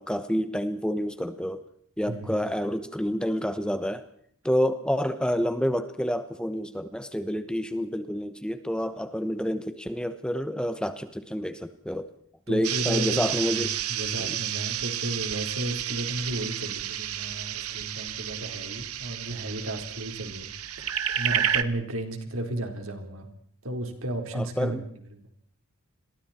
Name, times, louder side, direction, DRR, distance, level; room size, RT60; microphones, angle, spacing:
voice 1, 0.0-1.6 2.0-4.0 4.4-12.1 12.5-13.8 14.2-14.4 24.3-24.8, equal, 5° left, 10 dB, 1.1 m, -28 dB
voice 2, 2.1-2.5 12.5-20.5 20.8-23.3 23.6-24.8, right 1 dB, 70° right, 4 dB, 4.2 m, -34 dB
sound 1, 12.6-21.6, right 10 dB, 90° right, 1.3 m, -31 dB
29.5 x 22.5 x 4.4 m, 0.62 s
head